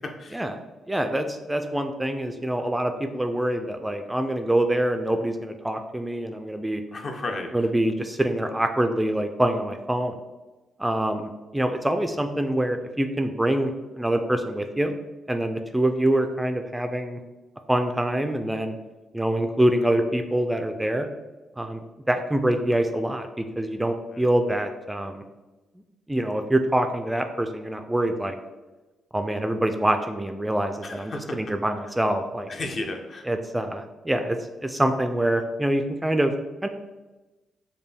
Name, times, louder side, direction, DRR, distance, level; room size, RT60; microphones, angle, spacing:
voice 1, 0.9-6.8 7.5-10.1 10.8-13.7 14.0-15.0 15.3-17.2 17.7-18.8 19.1-21.1 21.6-25.2 26.1-28.4 29.1-32.5 33.3-34.4 34.6-36.3 36.6-36.7, right 1 dB, 10° right, 6 dB, 0.3 m, -25 dB
voice 2, 6.9-7.5 24.1-24.2 30.8-31.4 32.5-33.3, left 2 dB, 45° left, 3 dB, 0.6 m, -33 dB
5.3 x 2.2 x 3.3 m, 1.1 s
cardioid pair, 80°, 0 cm